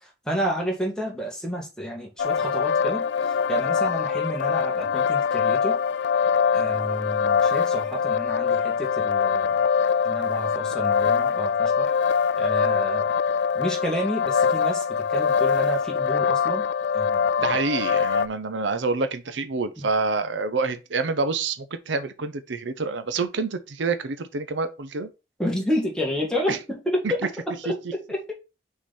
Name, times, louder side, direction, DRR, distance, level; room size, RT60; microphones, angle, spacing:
voice 1, 0.3-5.8 6.5-9.6 10.0-11.9 12.3-13.1 13.6-16.6 16.9-17.3 19.8-19.9 25.4-27.0 27.6-28.3, equal, 5° left, 1.9 m, -30 dB
sound 1, 2.2-18.3, left 6 dB, 70° left, 0.3 m, -23 dB
voice 2, 17.4-25.1 26.5-26.6 27.0-27.1 27.7-27.9, right 4 dB, 80° right, 0.7 m, -27 dB
6.0 x 3.9 x 4.1 m
head